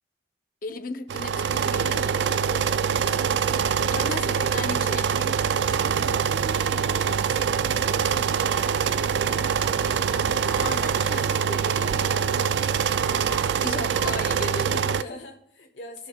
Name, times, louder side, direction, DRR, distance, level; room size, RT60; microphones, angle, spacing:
voice 1, 0.6-2.7 3.9-5.4 10.6-12.5 13.6-15.2, left 3 dB, 50° left, 0.6 m, -36 dB
sound 1, 1.1-15.0, right 7 dB, 70° right, 0.3 m, -24 dB
voice 2, 3.0-4.7 5.8-6.2 6.7-8.8 12.9-13.5 14.9-16.1, left 1 dB, 75° left, 1.0 m, -44 dB
sound 2, 5.6-13.9, right 1 dB, 45° right, 1.3 m, -44 dB
sound 3, 8.5-14.1, equal, 5° right, 2.0 m, -42 dB
17.0 x 6.5 x 2.3 m
head